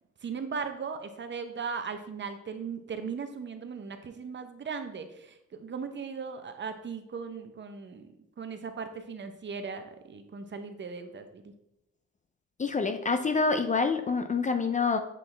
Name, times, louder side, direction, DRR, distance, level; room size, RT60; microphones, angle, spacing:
voice 1, 0.2-8.1 8.4-11.4, right 5 dB, 40° right, 8 dB, 0.8 m, -38 dB
voice 2, 12.6-15.0, left 4 dB, 25° left, 7 dB, 0.5 m, -27 dB
7.5 x 4.2 x 3.3 m, 0.82 s
cardioid pair, 90°, 30 cm